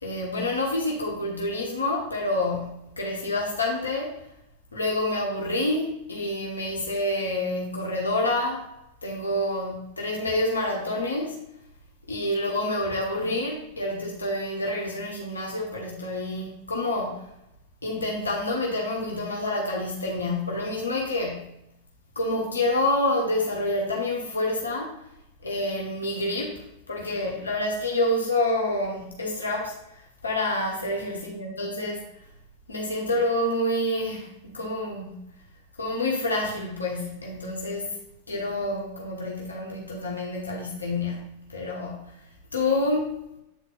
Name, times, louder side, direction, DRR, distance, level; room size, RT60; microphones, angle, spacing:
voice 1, 0.0-4.1 4.7-8.8 9.0-11.4 12.1-17.3 17.8-21.5 22.1-25.0 25.4-32.1 32.7-35.2 35.8-38.0 38.3-42.2 42.5-43.2, left 1 dB, 75° left, -1 dB, 1.4 m, -28 dB
8.4 x 4.1 x 4.0 m, 0.83 s
figure-of-eight pair, 90°, 0 cm